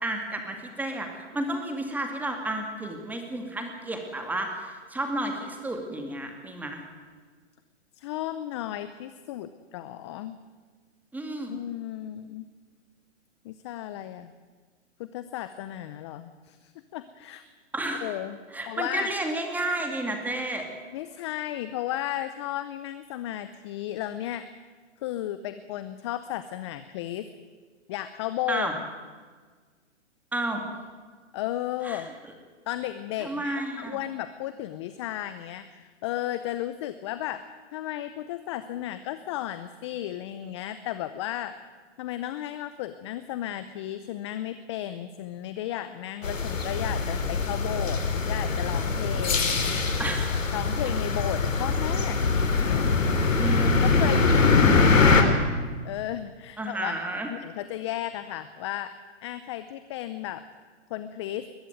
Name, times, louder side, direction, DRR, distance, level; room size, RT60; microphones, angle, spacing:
voice 1, 0.0-6.8 11.1-11.6 17.7-18.2 18.5-20.7 28.5-28.7 30.3-30.6 31.8-32.1 33.2-34.0 50.0-50.4 53.4-53.9 56.6-57.3, right 1 dB, 5° right, 3 dB, 2.3 m, -31 dB
voice 2, 8.0-10.4 11.5-12.5 13.4-14.3 15.0-17.4 18.0-18.4 18.7-19.1 20.9-24.5 25.0-27.3 27.9-28.8 31.3-32.1 32.7-41.5 42.0-49.6 50.5-52.2 52.6-53.0 54.0-55.5 55.8-56.9 57.3-58.9 59.2-60.4 60.9-61.5, left 13 dB, 25° left, 12 dB, 0.6 m, -34 dB
sound 1, 46.2-55.2, left 4 dB, 90° left, 3.3 m, -23 dB
21.0 x 14.5 x 9.3 m, 1.5 s
hypercardioid pair, 145°, 38 cm